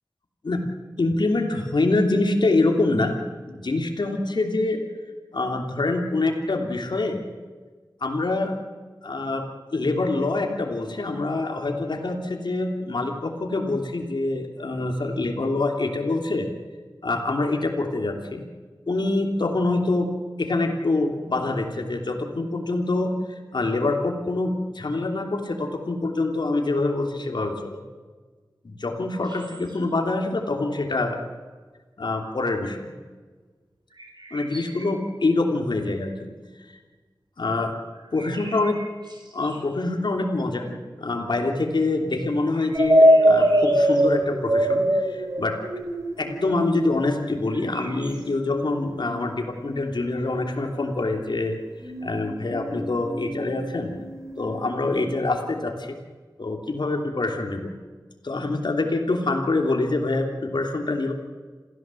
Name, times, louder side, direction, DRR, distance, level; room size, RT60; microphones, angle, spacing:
voice 1, 1.0-3.2 3.5-4.8 5.3-7.2 8.0-8.6 9.0-16.5 17.0-18.4 18.9-20.1 20.4-23.1 23.5-27.8 28.6-31.2 32.0-32.9 34.3-36.3 37.4-37.7 38.1-38.8 39.3-45.6 46.2-51.6 52.0-53.9 54.4-56.0 56.4-57.7 58.2-61.1, left 2 dB, 85° left, 3 dB, 3.2 m, -25 dB
sound 1, 29.2-29.9 33.9-35.2 37.9-39.8 42.5-44.1 47.5-48.2, right 2 dB, 70° right, 5.7 m, -45 dB
sound 2, 42.7-50.6 51.8-55.1, equal, 45° right, 3.1 m, -24 dB
28.0 x 16.0 x 7.8 m, 1.4 s
wide cardioid pair, 75°, 8 cm